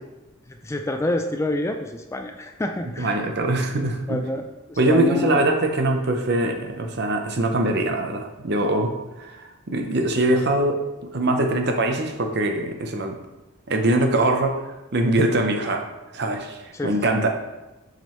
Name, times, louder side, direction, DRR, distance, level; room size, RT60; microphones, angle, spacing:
voice 1, 0.6-3.2 3.6-4.4 4.7-5.4 16.7-17.2, left 1 dB, 15° left, 5 dB, 0.3 m, -28 dB
voice 2, 3.0-4.2 4.8-8.9 9.2-10.8 11.1-13.2 13.7-14.6 14.9-15.8 16.1-17.3, right 1 dB, 50° right, 4 dB, 0.7 m, -22 dB
7.3 x 5.1 x 3.1 m, 1.0 s
head